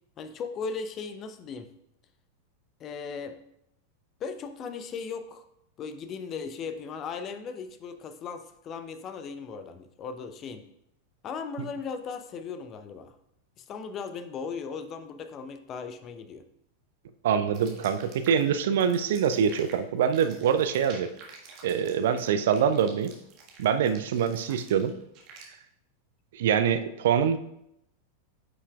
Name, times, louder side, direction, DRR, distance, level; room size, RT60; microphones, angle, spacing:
voice 1, 0.2-1.7 2.8-3.4 4.2-5.4 5.8-10.6 11.2-13.1 13.6-16.4 24.5-24.6, left 5 dB, 30° left, 9 dB, 0.6 m, -37 dB
voice 2, 17.2-21.1 21.6-23.1 23.6-24.9 26.3-27.4, right 8 dB, 55° right, 10 dB, 0.4 m, -24 dB
sound 1, 17.5-25.4, right 4 dB, 40° right, 1.5 m, -49 dB
9.4 x 5.6 x 2.3 m, 0.78 s
figure-of-eight pair, 90°, 0 cm